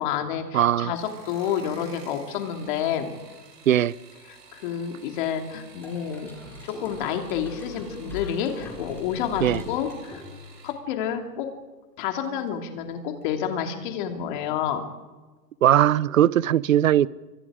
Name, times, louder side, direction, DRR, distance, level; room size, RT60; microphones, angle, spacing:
voice 1, 0.0-3.1 4.3-6.3 6.6-10.2 10.6-11.5 12.0-14.8, left 8 dB, 30° left, 2.8 m, -29 dB
voice 2, 0.5-0.9 3.7-3.9 9.4-9.6 15.6-17.1, right 11 dB, 55° right, 0.7 m, -19 dB
sound 1, 0.8-10.8 12.0-12.5 12.9-13.3 13.6-13.7, right 4 dB, 85° right, 7.7 m, -51 dB
sound 2, 5.8-10.7, left 4 dB, 5° left, 4.9 m, -40 dB
27.5 x 24.5 x 5.0 m
hypercardioid pair, 160°, 48 cm